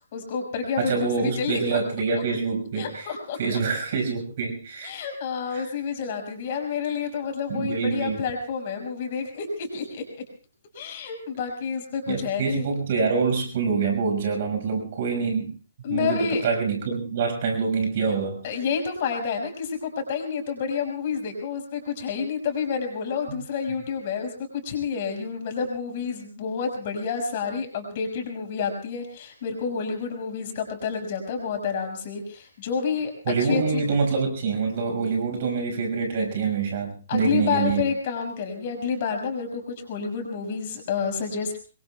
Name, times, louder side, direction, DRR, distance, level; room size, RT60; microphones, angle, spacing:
voice 1, 0.1-1.8 2.8-3.6 4.8-10.2 10.7-12.7 15.8-16.4 18.4-33.8 37.1-41.6, left 6 dB, 45° left, 3 dB, 5.7 m, -29 dB
voice 2, 0.8-3.1 3.4-4.9 5.5-5.7 7.5-8.2 12.1-15.5 15.9-18.4 33.3-37.9, right 5 dB, 50° right, 3 dB, 5.6 m, -26 dB
27.0 x 22.5 x 2.3 m, 0.38 s
figure-of-eight pair, 130°, 0 cm